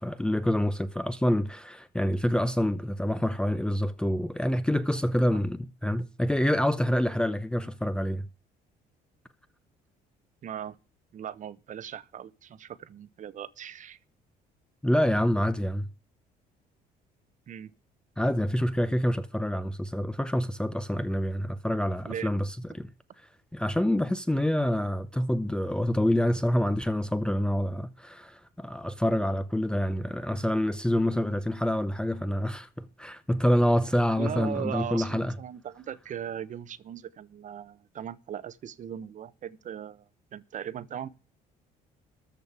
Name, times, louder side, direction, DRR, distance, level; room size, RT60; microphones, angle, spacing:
voice 1, 0.0-8.3 14.8-15.9 18.2-22.9 23.5-35.4, equal, 5° left, 0.8 m, -27 dB
voice 2, 10.4-10.8 11.1-14.0 17.5-17.7 22.1-22.3 34.2-40.1 40.3-41.1, right 9 dB, 50° right, 1.0 m, -38 dB
13.5 x 5.2 x 8.1 m
cardioid pair, 110°, 17 cm